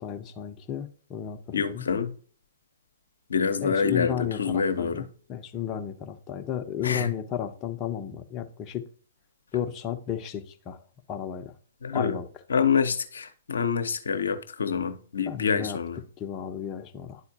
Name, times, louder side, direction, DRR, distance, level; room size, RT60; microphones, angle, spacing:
voice 1, 0.0-1.8 3.6-8.8 9.5-10.8 11.1-11.5 11.9-12.3 15.2-15.8 16.2-17.2, left 9 dB, 25° left, 0.9 m, -33 dB
voice 2, 1.5-2.1 3.3-5.1 6.8-7.1 11.8-12.2 12.5-16.0, left 6 dB, 70° left, 0.9 m, -26 dB
11.0 x 4.3 x 2.8 m
figure-of-eight pair, 115°, 0 cm